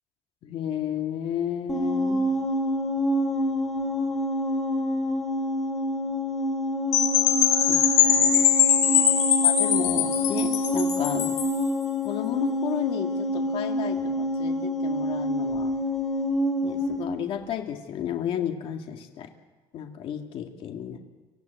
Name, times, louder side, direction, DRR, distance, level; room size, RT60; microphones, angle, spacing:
voice 1, 0.4-2.2 7.7-8.5 9.4-11.3 12.0-15.7 16.6-19.3 19.7-21.0, left 9 dB, 55° left, 4 dB, 2.0 m, -33 dB
sound 1, 1.7-17.1, left 1 dB, ahead, 3.0 m, -27 dB
Percussion / Wind chime, 6.9-11.6, left 9 dB, 75° left, 6.1 m, -22 dB
25.0 x 14.0 x 9.3 m, 1.3 s
cardioid pair, 135°, 11 cm